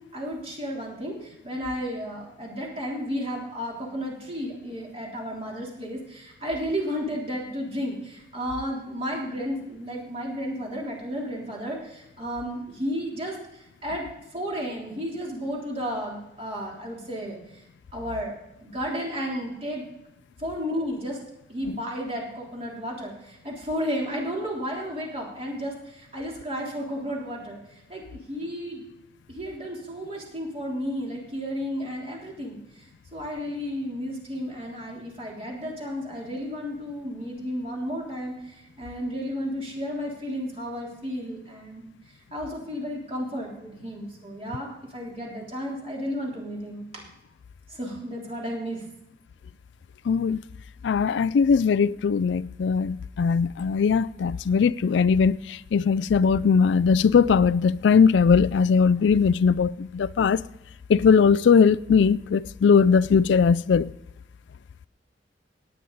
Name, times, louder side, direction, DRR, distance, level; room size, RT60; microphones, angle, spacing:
voice 1, 0.1-17.6 17.9-18.3 18.6-19.9 20.4-21.2 21.5-28.9 29.3-41.9 42.3-47.0 47.7-48.8, equal, 35° right, 3.4 m, -33 dB
voice 2, 50.1-50.4 50.8-60.4 60.9-63.9, left 6 dB, 75° left, 0.3 m, -20 dB
18.0 x 9.1 x 4.0 m
head